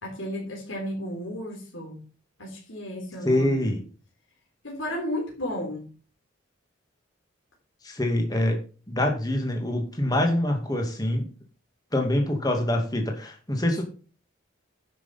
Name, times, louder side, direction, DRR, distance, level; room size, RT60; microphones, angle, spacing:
voice 1, 0.0-2.0 2.4-3.7 4.6-5.9, left 1 dB, 75° left, 3.8 m, -33 dB
voice 2, 3.2-3.8 7.8-8.6 8.9-11.2 11.9-13.8, left 1 dB, 20° left, 2.3 m, -25 dB
10.0 x 6.3 x 5.8 m
head